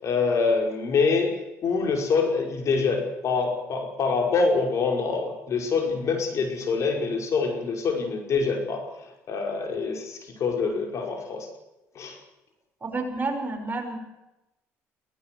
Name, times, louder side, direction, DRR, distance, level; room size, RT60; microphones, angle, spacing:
voice 1, 0.0-1.3 1.6-8.8 9.3-11.5 12.0-12.2, left 4 dB, 55° left, 3 dB, 5.5 m, -25 dB
voice 2, 12.8-14.0, right 3 dB, 30° right, 3 dB, 6.2 m, -30 dB
21.5 x 18.5 x 7.9 m, 0.98 s
supercardioid pair, 85°, 6 cm